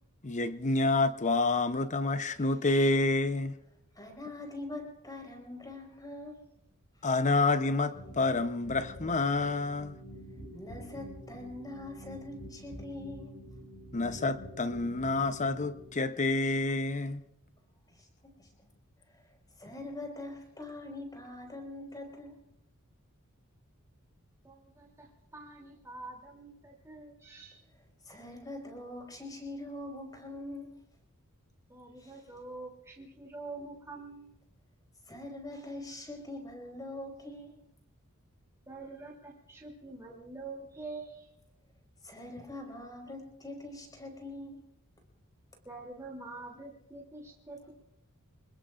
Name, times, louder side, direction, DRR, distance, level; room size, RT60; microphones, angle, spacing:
voice 1, 0.2-3.6 7.0-10.0 13.9-17.2, left 3 dB, 35° left, 0.8 m, -28 dB
voice 2, 3.9-6.4 10.5-13.4 18.4-18.5 19.1-19.2 19.6-22.3 28.1-30.8 32.0-32.2 35.1-37.6 42.0-44.6, left 2 dB, 20° left, 4.7 m, -43 dB
sound 1, 7.9-15.9, equal, 85° left, 4.6 m, -47 dB
voice 3, 24.4-27.6 31.7-34.3 38.7-41.3 45.6-47.7, right 3 dB, 15° right, 3.0 m, -46 dB
27.0 x 21.0 x 2.5 m
head